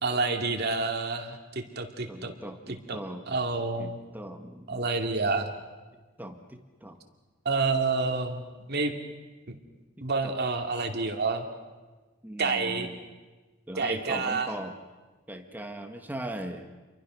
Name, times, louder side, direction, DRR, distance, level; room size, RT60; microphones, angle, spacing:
voice 1, 0.0-2.3 2.9-3.0 3.3-4.0 4.7-5.5 7.4-8.4 8.7-8.9 10.0-11.4 12.4-12.9 13.8-14.5, right 3 dB, 55° right, 4 dB, 2.6 m, -28 dB
voice 2, 2.1-3.3 3.8-4.9 6.2-7.0 10.0-10.3 12.2-13.0 13.7-14.8 15.3-16.7, right 1 dB, 10° right, 5 dB, 1.7 m, -39 dB
30.0 x 23.0 x 6.4 m, 1.3 s
head